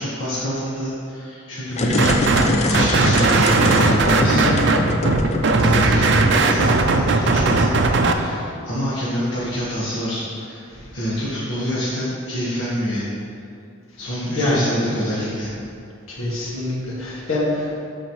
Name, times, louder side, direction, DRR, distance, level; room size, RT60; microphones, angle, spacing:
voice 1, 0.0-4.6 5.0-5.3 5.6-10.7 10.9-13.1 14.0-15.5, equal, 65° left, -9 dB, 1.4 m, -26 dB
sound 1, 1.7-7.5, left 2 dB, 30° left, 0.4 m, -24 dB
sound 2, 2.0-2.5 2.7-8.1, right 3 dB, 55° right, 0.5 m, -17 dB
voice 2, 14.0-14.6 16.1-17.7, left 2 dB, 85° left, -5 dB, 1.8 m, -25 dB
12.5 x 4.3 x 3.1 m, 2.5 s
head